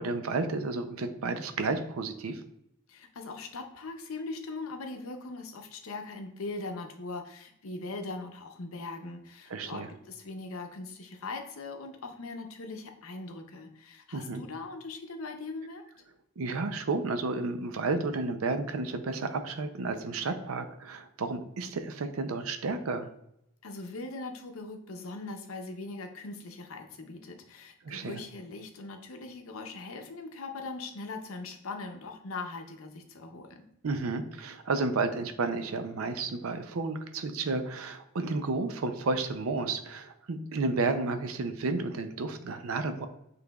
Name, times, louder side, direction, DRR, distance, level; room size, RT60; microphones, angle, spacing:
voice 1, 0.0-2.4 9.5-9.9 14.1-14.4 16.4-23.1 27.8-28.2 33.8-43.1, right 3 dB, 85° right, 9 dB, 0.5 m, -32 dB
voice 2, 2.9-15.8 23.6-33.6, left 3 dB, 85° left, 5 dB, 0.7 m, -40 dB
6.9 x 3.2 x 2.3 m, 0.78 s
head